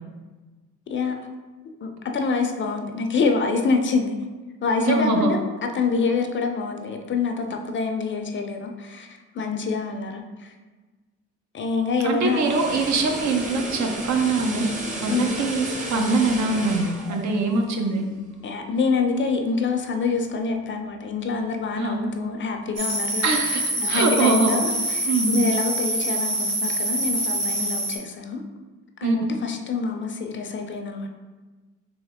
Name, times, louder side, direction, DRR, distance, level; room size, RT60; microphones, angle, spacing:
voice 1, 0.9-1.2 1.8-4.2 4.6-10.5 11.5-12.5 15.1-15.4 18.4-23.3 23.8-28.4 29.0-31.1, left 4 dB, 40° left, 4 dB, 0.5 m, -26 dB
voice 2, 4.8-5.3 12.0-14.7 14.9-18.0 21.8-22.0 23.2-24.6 25.0-25.4 29.0-29.2, right 3 dB, 65° right, 3 dB, 0.7 m, -23 dB
sound 1, 12.0-18.2 18.6-18.8, right 1 dB, 25° right, 0.8 m, -33 dB
sound 2, 22.8-28.0, right 1 dB, 50° right, 1.3 m, -25 dB
3.5 x 3.0 x 3.5 m, 1.3 s
cardioid pair, 90°, 30 cm